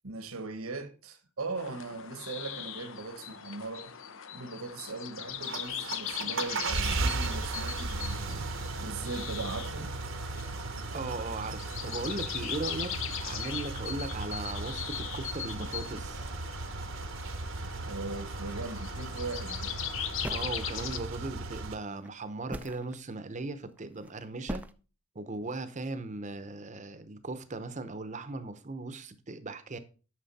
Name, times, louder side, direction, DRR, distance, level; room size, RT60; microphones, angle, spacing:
voice 1, 0.0-4.0 4.3-8.4 8.8-10.0 17.9-19.7, right 3 dB, 85° right, 1.2 m, -39 dB
sound 1, 1.6-21.0, left 10 dB, 65° left, 0.6 m, -40 dB
sound 2, 5.3-21.8, right 3 dB, 60° right, 0.9 m, -36 dB
voice 2, 10.9-12.9 13.2-16.3 20.3-24.6 25.1-29.8, right 3 dB, 35° right, 0.7 m, -38 dB
sound 3, 19.6-19.8 20.2-21.1 22.0-22.1 22.5-22.9 23.8-24.1 24.4-24.7, right 1 dB, 5° right, 0.4 m, -39 dB
9.4 x 6.2 x 4.1 m
head